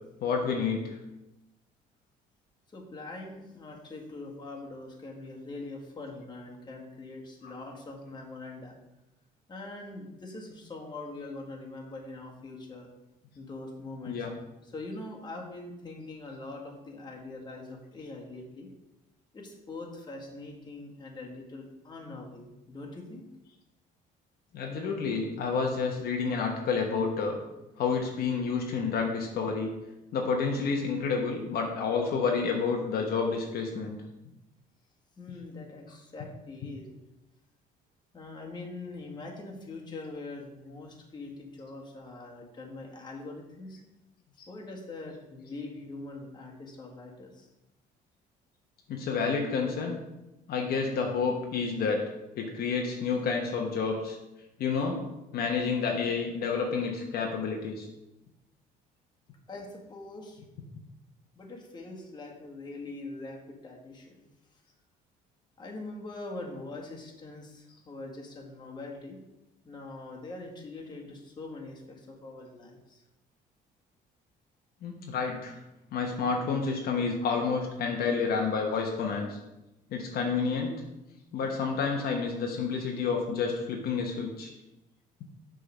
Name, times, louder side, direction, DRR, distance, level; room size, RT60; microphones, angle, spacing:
voice 1, 0.2-1.0 7.4-7.5 14.1-14.3 24.5-27.4 27.8-29.7 30.1-34.0 44.4-44.5 48.9-50.0 50.5-52.0 52.4-54.2 54.6-55.0 55.3-57.9 74.8-75.5 75.9-79.4 79.9-80.7 81.3-84.5, left 5 dB, 65° left, 1 dB, 1.2 m, -29 dB
voice 2, 2.7-8.8 9.5-12.9 13.3-14.3 14.6-18.7 19.3-23.3 35.2-36.9 38.1-43.8 44.5-47.5 59.4-60.4 61.3-64.2 64.5-64.6 65.6-69.2 69.6-73.0, left 2 dB, 25° left, -1 dB, 1.7 m, -43 dB
6.6 x 3.8 x 6.2 m, 0.95 s
cardioid pair, 110°, 17 cm